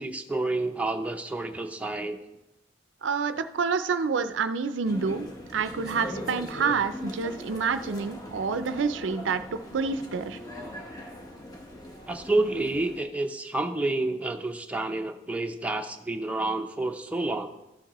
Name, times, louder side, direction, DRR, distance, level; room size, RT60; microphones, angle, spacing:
voice 1, 0.0-2.2 12.1-17.5, right 2 dB, 10° right, 4 dB, 0.6 m, -29 dB
voice 2, 3.0-5.3 5.5-9.4 9.7-10.4, right 5 dB, 80° right, 11 dB, 0.5 m, -28 dB
sound 1, 4.8-13.0, left 1 dB, 20° left, 1.0 m, -40 dB
13.5 x 7.2 x 3.0 m, 0.93 s
head